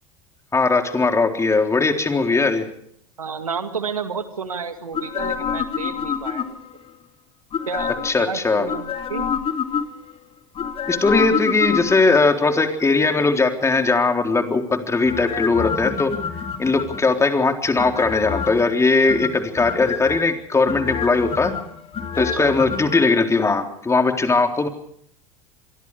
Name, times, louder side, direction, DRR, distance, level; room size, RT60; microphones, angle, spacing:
voice 1, 0.5-2.7 8.0-8.7 10.9-16.1 16.6-21.5 22.2-24.7, left 3 dB, 15° left, 5 dB, 3.8 m, -19 dB
voice 2, 3.2-6.6 7.7-9.3 22.2-22.6 24.3-24.4, right 5 dB, 90° right, 8 dB, 2.1 m, -31 dB
sound 1, 4.9-6.8 7.5-8.2 8.7-10.1 10.6-12.3 15.1-17.2 17.8-18.7 19.1-20.2 20.7-23.0 23.3-23.4, left 7 dB, 35° left, 3.5 m, -27 dB
27.5 x 23.0 x 4.9 m, 0.65 s
hypercardioid pair, 80°, 18 cm